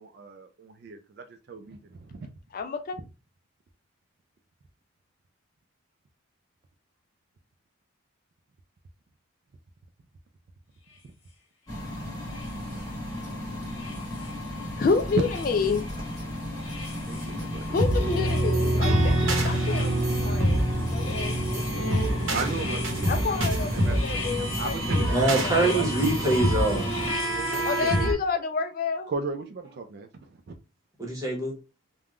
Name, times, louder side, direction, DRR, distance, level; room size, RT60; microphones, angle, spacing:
voice 1, 0.0-2.3 17.0-17.9 22.3-24.0 24.6-25.9 27.4-27.7 27.9-28.1 29.1-30.5, right 4 dB, 50° right, 0.3 m, -36 dB
voice 2, 2.5-3.0 14.8-15.9 17.7-21.9 23.1-25.1 25.4-25.7 27.6-29.1, left 5 dB, 45° left, 0.3 m, -29 dB
sound 1, 10.9-11.0 12.2-13.2 13.7-14.8 15.1-28.1, left 4 dB, 70° left, 1.0 m, -41 dB
sound 2, 11.7-27.1, left 1 dB, 15° left, 1.3 m, -34 dB
sound 3, 17.8-28.1, right 1 dB, 75° right, 0.8 m, -26 dB
voice 3, 25.1-26.9 31.0-31.5, right 2 dB, 15° right, 1.0 m, -24 dB
3.4 x 2.2 x 2.4 m
head